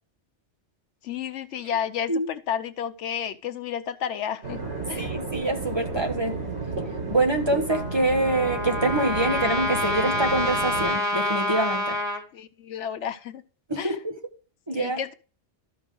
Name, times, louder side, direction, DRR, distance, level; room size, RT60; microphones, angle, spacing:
voice 1, 1.0-4.6 4.9-5.1 12.3-13.4 13.8-14.0 14.7-15.1, left 9 dB, 80° left, 1.1 m, -31 dB
sound 1, 4.4-10.9, right 3 dB, 80° right, 4.4 m, -33 dB
voice 2, 4.9-6.4 7.1-12.0 13.7-14.1 14.7-15.0, right 2 dB, 25° right, 1.3 m, -25 dB
Trumpet, 7.7-12.2, left 1 dB, 5° right, 2.1 m, -27 dB
13.0 x 5.4 x 3.7 m
omnidirectional pair, 1.2 m